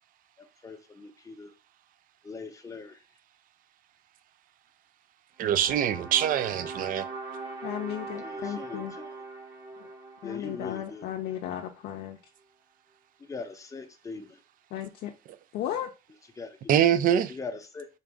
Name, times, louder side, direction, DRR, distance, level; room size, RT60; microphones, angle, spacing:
voice 1, 0.6-1.5 2.2-3.0 8.2-9.2 10.2-11.0 13.2-14.4 16.4-16.7 17.3-17.9, left 4 dB, 20° left, 0.7 m, -41 dB
voice 2, 5.4-7.1 16.7-17.4, right 10 dB, 55° right, 0.4 m, -24 dB
sound 1, 5.4-11.6, right 3 dB, 80° right, 1.0 m, -41 dB
voice 3, 7.6-8.9 10.2-12.2 14.7-15.1 15.5-15.9, left 11 dB, 75° left, 0.5 m, -35 dB
3.9 x 2.5 x 3.4 m
cardioid pair, 110°, 17 cm